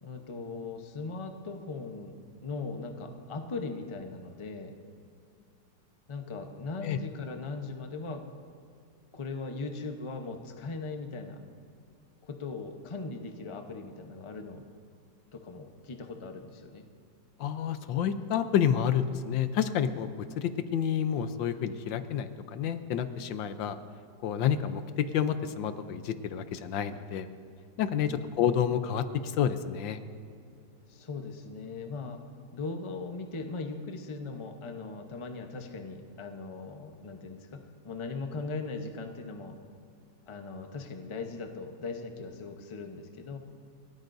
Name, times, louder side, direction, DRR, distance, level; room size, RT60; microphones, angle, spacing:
voice 1, 0.0-2.2 2.4-4.7 6.1-8.2 9.1-11.4 12.2-14.6 15.3-16.8 28.0-28.4 30.9-32.2 32.5-39.6 40.3-43.4, left 3 dB, 25° left, 4 dB, 0.6 m, -39 dB
voice 2, 17.4-20.1 20.4-23.8 24.2-27.3 27.8-30.0, left 9 dB, 85° left, 10 dB, 1.5 m, -29 dB
29.0 x 13.5 x 2.7 m, 2.4 s
omnidirectional pair, 2.0 m